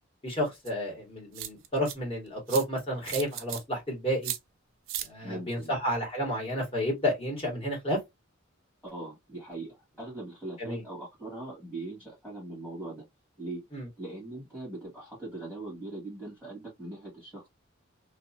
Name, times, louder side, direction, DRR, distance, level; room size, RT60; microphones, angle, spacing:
voice 1, 0.2-4.3 5.0-8.0 10.6-10.8 13.7-13.9, equal, 30° left, 1.5 m, -31 dB
sound 1, 0.7-0.8 1.3-1.9 2.5-2.6 3.1-3.6 4.2-4.4 4.9-5.1, right 12 dB, 65° right, 0.4 m, -35 dB
voice 2, 5.2-5.8 8.8-13.0 13.4-13.6 14.0-17.5, right 2 dB, 10° left, 1.5 m, -40 dB
2.7 x 2.4 x 2.6 m
head